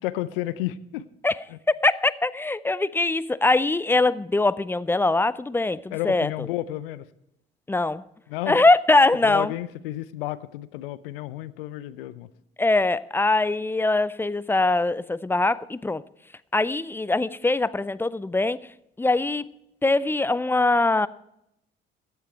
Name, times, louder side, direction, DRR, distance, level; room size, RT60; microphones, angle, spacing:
voice 1, 0.0-1.0 1.5-1.6 5.9-7.1 8.3-8.6 9.2-12.3, left 15 dB, 70° left, 0.6 m, -31 dB
voice 2, 1.7-6.3 7.7-8.0 8.5-9.5 12.6-16.0 16.5-18.6 19.0-19.5 19.8-21.1, left 2 dB, 10° left, 0.4 m, -22 dB
15.0 x 10.5 x 4.5 m
figure-of-eight pair, 55°, 29 cm